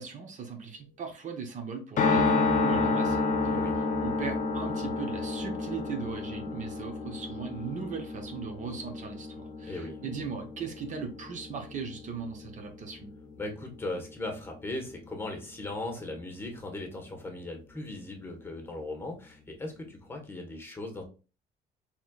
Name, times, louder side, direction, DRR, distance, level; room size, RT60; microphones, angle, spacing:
voice 1, 0.0-3.6 4.0-13.1, right 5 dB, 50° right, 4 dB, 0.8 m, -38 dB
sound 1, 2.0-14.2 14.5-14.6 14.8-14.9, left 3 dB, 50° left, 0.7 m, -30 dB
voice 2, 9.6-10.2 13.4-21.0, left 2 dB, 15° left, 2 dB, 1.3 m, -38 dB
4.3 x 3.7 x 2.3 m, 0.33 s
cardioid pair, 110°, 17 cm